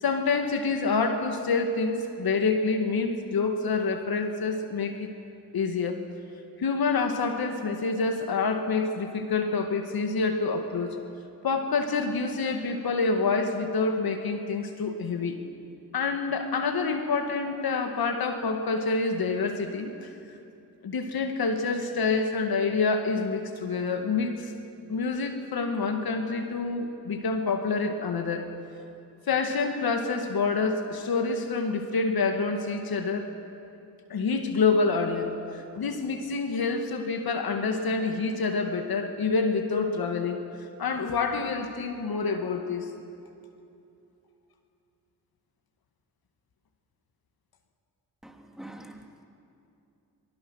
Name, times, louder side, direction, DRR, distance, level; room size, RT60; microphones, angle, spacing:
voice 1, 0.0-5.1 5.5-6.1 6.6-11.0 11.4-15.4 15.9-20.1 20.8-24.5 24.9-28.5 29.3-33.3 34.1-42.9, left 4 dB, 70° left, 5 dB, 2.1 m, -27 dB
voice 2, 48.2-49.2, right 1 dB, ahead, 2 dB, 3.3 m, -45 dB
24.5 x 24.5 x 6.5 m, 2.7 s
supercardioid pair, 50°, 38 cm